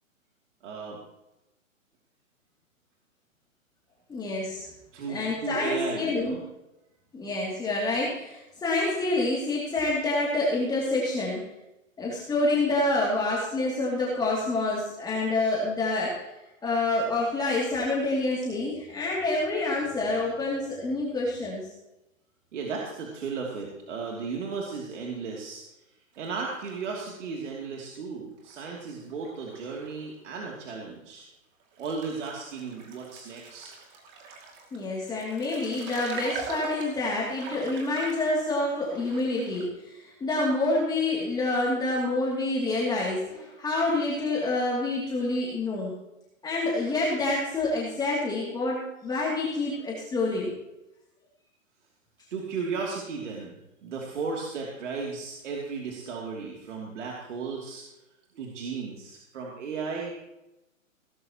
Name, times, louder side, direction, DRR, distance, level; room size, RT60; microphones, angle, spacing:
voice 1, 0.6-1.0 4.9-6.4 22.5-25.6 26.2-31.2 31.8-33.8 52.3-57.8 58.3-60.1, right 5 dB, 60° right, -1 dB, 2.9 m, -35 dB
voice 2, 4.1-4.7 5.1-6.4 7.1-11.4 12.0-16.2 16.6-21.6 34.7-45.9 46.4-50.5, left 2 dB, 10° left, -5 dB, 2.7 m, -27 dB
sound 1, 26.1-28.0 28.4-30.1 30.4-30.5 31.2-31.3 31.7-39.7, right 4 dB, 25° right, 2.5 m, -43 dB
17.5 x 14.0 x 3.0 m, 0.94 s
hypercardioid pair, 140°, 40 cm